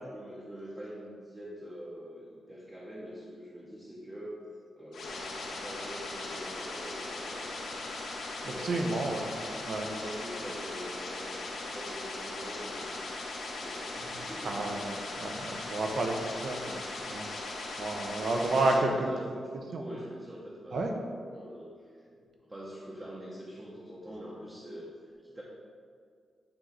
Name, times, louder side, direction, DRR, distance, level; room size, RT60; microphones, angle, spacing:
voice 1, 0.1-4.3 4.8-7.9 8.4-9.0 9.5-14.7 17.9-18.2 18.5-25.4, equal, 15° right, -6 dB, 0.8 m, -45 dB
sound 1, 4.9-18.8, left 2 dB, 80° left, 1.0 m, -39 dB
voice 2, 8.4-9.3 9.6-9.9 14.4-17.3 17.8-19.1 19.7-19.8 20.7-20.9, right 2 dB, 55° right, 2 dB, 0.7 m, -31 dB
8.7 x 3.2 x 3.8 m, 2.1 s
wide cardioid pair, 140°, 0 cm